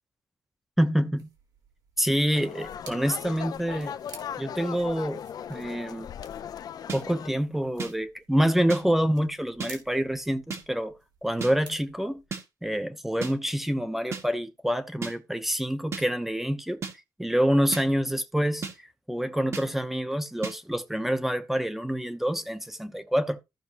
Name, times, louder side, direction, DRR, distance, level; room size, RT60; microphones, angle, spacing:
voice 1, 0.8-1.3 2.0-3.9 4.4-5.2 5.5-6.1 6.9-10.9 11.2-12.2 12.6-16.8 17.2-18.6 19.1-23.4, equal, 5° right, 0.8 m, -27 dB
sound 1, 1.2-12.3, right 4 dB, 80° right, 3.3 m, -54 dB
sound 2, 2.3-7.3, left 9 dB, 80° left, 0.5 m, -38 dB
sound 3, 6.9-7.0 7.8-7.9 8.7-8.8 9.6-9.7 10.5-10.6 11.4-11.5 12.3-12.4 13.2-13.3 14.1-14.2 15.0-15.1 15.9-16.0 16.8-16.9 17.7-17.8 18.6-18.7 19.5-19.6 20.4-20.5, right 5 dB, 45° right, 1.6 m, -33 dB
14.5 x 6.0 x 2.9 m
wide cardioid pair, 165°, 7 cm